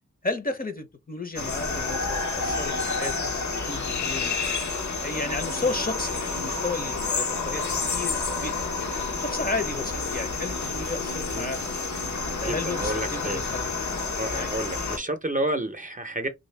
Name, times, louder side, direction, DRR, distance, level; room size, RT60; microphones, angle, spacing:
voice 1, 0.2-3.4 3.7-4.3 5.0-8.9 9.2-11.6 12.4-13.7 14.3-14.5, left 3 dB, 30° left, 0.7 m, -33 dB
sound 1, 1.4-15.0, left 4 dB, 70° left, 0.9 m, -29 dB
voice 2, 12.4-13.4 14.2-16.3, right 1 dB, 25° right, 0.7 m, -30 dB
3.2 x 2.6 x 3.2 m
wide cardioid pair, 60°, 30 cm